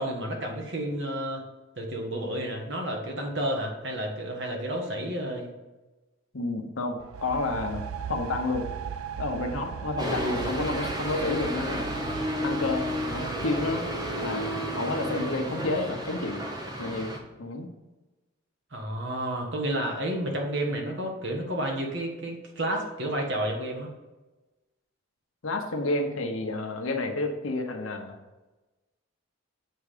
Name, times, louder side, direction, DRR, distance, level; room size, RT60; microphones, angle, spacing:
voice 1, 0.0-1.4 1.7-5.5 18.7-23.9, right 1 dB, 55° right, 1 dB, 1.4 m, -31 dB
voice 2, 6.3-8.7 9.2-11.9 12.4-13.8 14.2-16.5 16.8-17.7 25.4-28.2, left 2 dB, 75° left, 4 dB, 0.9 m, -30 dB
sound 1, 7.0-14.8, right 8 dB, 85° right, 0.4 m, -38 dB
sound 2, 10.0-17.2, equal, 20° right, 0.7 m, -32 dB
8.0 x 3.6 x 4.9 m, 1.1 s
head